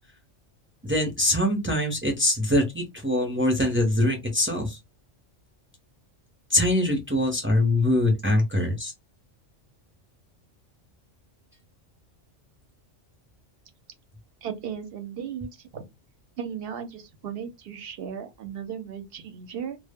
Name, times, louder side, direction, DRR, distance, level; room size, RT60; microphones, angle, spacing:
voice 1, 0.8-4.8 6.5-8.9, left 1 dB, 15° right, 0.4 m, -23 dB
voice 2, 14.4-15.9 16.4-19.8, right 8 dB, 60° right, 0.7 m, -36 dB
2.0 x 2.0 x 3.4 m
omnidirectional pair, 1.3 m